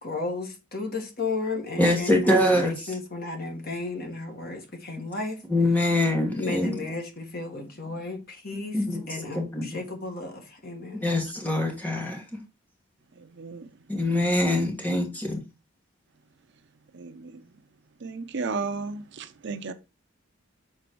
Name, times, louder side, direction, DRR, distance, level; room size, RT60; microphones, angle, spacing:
voice 1, 0.0-5.4 5.8-5.9 6.3-8.8 9.1-11.0, left 3 dB, 45° left, 1.7 m, -34 dB
voice 2, 1.8-2.8 5.5-6.7 8.7-9.1 9.3-9.7 10.9-12.2 13.9-15.4, left 1 dB, 10° left, 1.6 m, -24 dB
voice 3, 13.4-13.7 14.1-14.2 16.9-17.3 18.0-19.7, right 4 dB, 55° right, 0.6 m, -33 dB
6.6 x 4.2 x 4.6 m
head